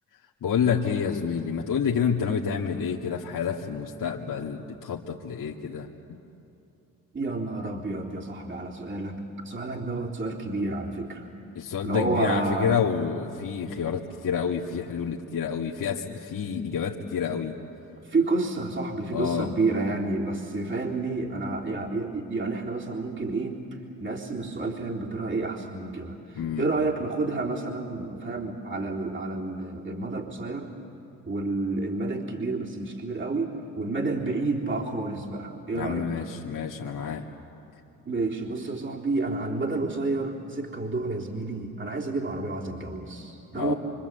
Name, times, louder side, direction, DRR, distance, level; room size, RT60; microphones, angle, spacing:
voice 1, 0.4-6.2 11.6-17.5 19.1-19.5 26.4-26.7 35.7-37.3 43.6-43.7, left 7 dB, 50° left, -2 dB, 2.0 m, -28 dB
voice 2, 7.1-11.3 11.8-12.8 18.0-23.6 24.0-30.7 31.3-36.2 38.0-43.7, right 3 dB, 30° right, -1 dB, 3.8 m, -30 dB
26.0 x 25.5 x 8.1 m, 2.8 s
hypercardioid pair, 55°, 40 cm